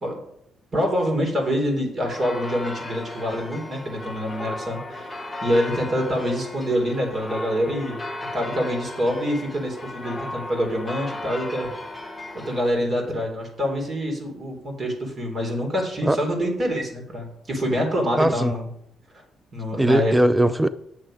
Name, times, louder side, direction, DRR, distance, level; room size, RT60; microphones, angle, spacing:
voice 1, 0.7-5.1 5.4-8.0 8.3-11.7 12.4-18.7 19.5-20.1, equal, 40° right, 3.4 m, -26 dB
sound 1, 2.1-12.7, left 2 dB, 5° left, 1.5 m, -35 dB
voice 2, 18.1-18.5 19.8-20.7, right 1 dB, 10° right, 0.4 m, -19 dB
8.3 x 7.2 x 5.1 m
cardioid pair, 90°, 0 cm